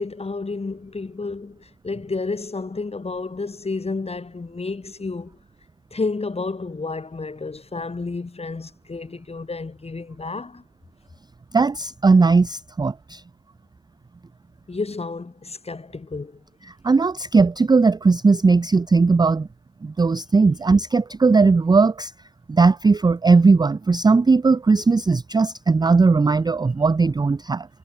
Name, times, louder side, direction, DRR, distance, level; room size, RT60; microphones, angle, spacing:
voice 1, 0.0-5.4 5.9-10.6 14.7-16.4, left 3 dB, 20° left, 1.5 m, -31 dB
voice 2, 11.5-13.2 16.8-19.5 19.8-22.1 22.5-27.7, right 4 dB, 15° right, 0.5 m, -18 dB
hypercardioid pair, 60°, 33 cm